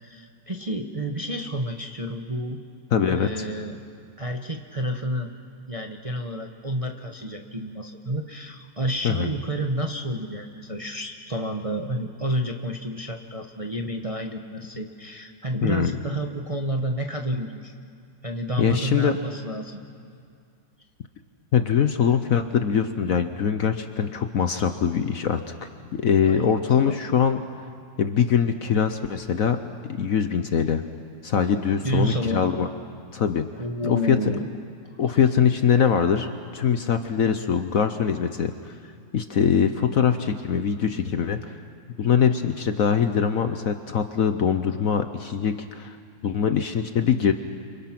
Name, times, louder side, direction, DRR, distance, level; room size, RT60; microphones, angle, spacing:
voice 1, 0.0-2.6 3.1-3.8 4.2-5.3 5.7-17.7 18.2-19.8 26.2-27.2 31.8-32.6 33.6-34.5 35.0-35.2, equal, 25° right, 3 dB, 0.9 m, -30 dB
voice 2, 2.9-3.3 9.0-9.3 15.6-15.9 18.6-19.2 21.5-25.4 25.9-27.4 28.0-29.6 29.9-30.8 31.2-32.7 33.1-33.5 33.8-34.3 35.0-36.3 36.5-38.7 39.1-41.6 42.0-46.0 46.2-47.3, left 7 dB, 60° left, 9 dB, 1.1 m, -22 dB
30.0 x 26.0 x 6.0 m, 2.3 s
omnidirectional pair, 2.0 m